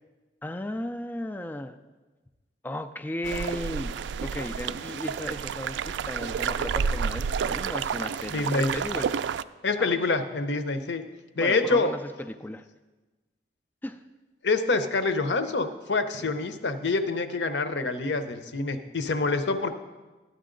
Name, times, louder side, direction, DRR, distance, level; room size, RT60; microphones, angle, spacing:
voice 1, 0.4-1.8 2.6-3.9 4.2-9.1 9.8-10.0 11.4-12.7 13.8-14.0, left 1 dB, 10° left, 7 dB, 0.3 m, -35 dB
sound 1, 3.2-9.4, right 6 dB, 85° right, 0.3 m, -30 dB
voice 2, 8.3-8.7 9.6-11.0 11.4-11.9 14.4-19.7, left 3 dB, 75° left, 9 dB, 0.7 m, -26 dB
12.5 x 9.1 x 3.8 m, 1.2 s
head